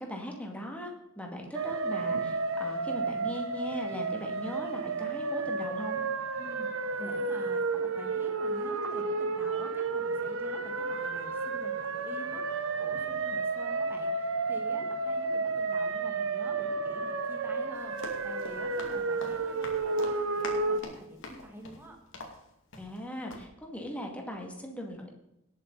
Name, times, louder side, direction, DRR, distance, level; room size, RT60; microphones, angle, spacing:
voice 1, 0.0-6.0 22.8-25.1, equal, 5° left, 1 dB, 2.2 m, -39 dB
sound 1, 1.5-20.8, right 3 dB, 75° right, 1.0 m, -32 dB
voice 2, 6.4-22.0, equal, 10° right, 1 dB, 1.9 m, -48 dB
Run, 17.7-23.0 23.3-23.5, left 2 dB, 65° left, 2.6 m, -45 dB
18.0 x 8.5 x 4.1 m, 0.87 s
head